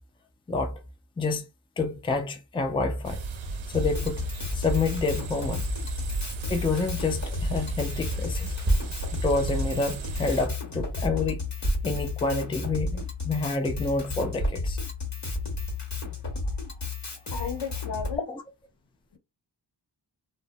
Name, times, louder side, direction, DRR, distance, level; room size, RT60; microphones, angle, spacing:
voice 1, 0.5-0.8 1.2-1.4 1.8-3.2 3.7-4.3 4.5-5.7 6.5-8.5 9.1-11.5 11.8-14.8 18.3-18.4, left 3 dB, 10° left, 0.5 m, -28 dB
sound 1, 3.0-10.5, right 3 dB, 85° right, 0.6 m, -35 dB
Drum kit, 3.7-18.2, left 3 dB, 40° left, 1.1 m, -33 dB
sound 2, 8.6-9.0 10.6-10.7 11.6-12.0 12.6-12.7 13.2-13.3 14.4-14.7, right 1 dB, 10° right, 0.9 m, -27 dB
voice 2, 17.3-18.3, left 6 dB, 70° left, 0.8 m, -34 dB
2.5 x 2.1 x 2.5 m
wide cardioid pair, 75°, 45 cm